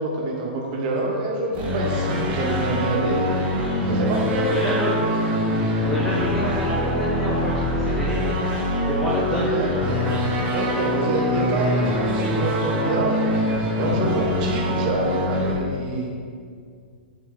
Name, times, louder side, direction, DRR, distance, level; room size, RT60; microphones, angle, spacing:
voice 1, 0.0-3.3 3.9-4.8 9.4-10.0 10.5-13.2 13.8-16.1, right 2 dB, 45° right, -1 dB, 1.3 m, -26 dB
sound 1, 1.5-15.5, equal, 30° right, 1.5 m, -24 dB
voice 2, 4.5-4.9 5.9-8.2 8.4-8.6 8.9-9.5, left 1 dB, 5° left, -5 dB, 0.9 m, -28 dB
7.6 x 6.0 x 3.6 m, 2.1 s
hypercardioid pair, 130°, 6 cm